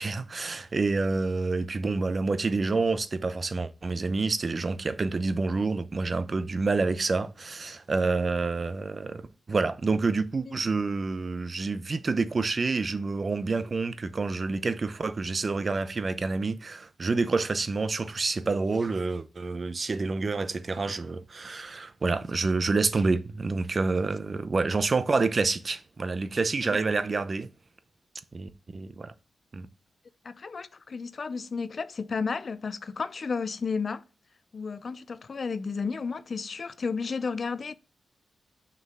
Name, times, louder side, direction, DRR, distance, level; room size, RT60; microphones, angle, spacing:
voice 1, 0.0-9.2 9.5-27.5 28.3-29.1 29.5-29.7, right 3 dB, 45° right, 0.6 m, -28 dB
voice 2, 30.2-34.0 34.5-37.7, left 5 dB, 50° left, 0.4 m, -32 dB
6.4 x 4.6 x 3.6 m
cardioid pair, 90°, 0 cm